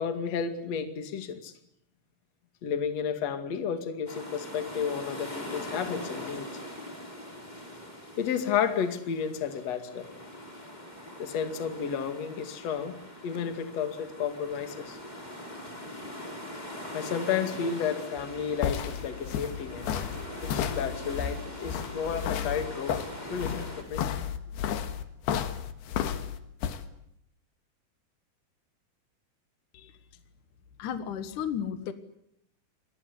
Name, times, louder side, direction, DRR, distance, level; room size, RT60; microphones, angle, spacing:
voice 1, 0.0-1.5 2.6-6.5 8.2-10.1 11.2-13.0 13.2-15.0 16.9-19.9 20.4-23.0 23.3-24.1, left 7 dB, 45° left, 8 dB, 3.0 m, -32 dB
sound 1, 4.1-23.8, left 1 dB, 10° left, 4.7 m, -42 dB
sound 2, 18.2-26.8, left 9 dB, 80° left, 3.6 m, -32 dB
voice 2, 30.8-31.9, left 8 dB, 60° left, 10 dB, 2.6 m, -34 dB
27.5 x 21.5 x 8.3 m, 0.75 s
omnidirectional pair, 4.5 m